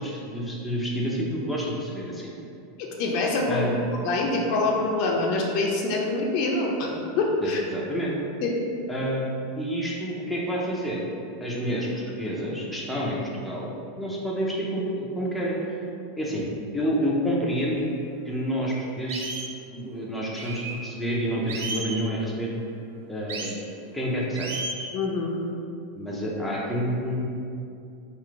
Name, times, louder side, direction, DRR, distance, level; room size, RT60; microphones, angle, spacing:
voice 1, 0.0-2.3 3.5-3.8 7.4-8.1 8.9-9.2 9.6-11.0 11.4-15.5 16.2-16.5 16.7-17.9 18.2-19.3 19.7-22.5 23.1-23.6 23.9-24.6 26.0-27.2, equal, ahead, -5 dB, 0.6 m, -28 dB
voice 2, 2.8-3.7 4.0-7.6 8.4-8.5 24.9-25.4, left 2 dB, 50° left, 0 dB, 0.5 m, -25 dB
sound 1, 17.8-17.9 18.4-18.5 19.1-19.5 20.4-20.8 21.5-22.0 23.3-23.6 24.3-24.9, right 3 dB, 90° right, 0.5 m, -33 dB
3.8 x 2.5 x 4.6 m, 2.5 s
supercardioid pair, 150°, 0 cm